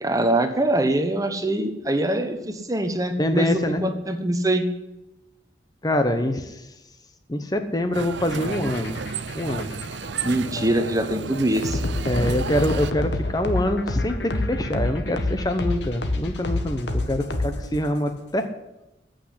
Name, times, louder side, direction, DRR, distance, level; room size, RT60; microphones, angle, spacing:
voice 1, 0.0-4.6 10.2-11.8, right 1 dB, 20° right, 8 dB, 1.1 m, -23 dB
voice 2, 3.2-3.9 5.8-6.6 7.3-9.0 9.3-9.7 12.1-18.5, left 1 dB, 20° left, 8 dB, 0.9 m, -25 dB
sound 1, 7.9-12.9, right 5 dB, 85° right, 0.6 m, -32 dB
sound 2, 8.2-18.0, left 1 dB, 75° left, 1.5 m, -28 dB
14.5 x 6.5 x 9.9 m, 0.95 s
head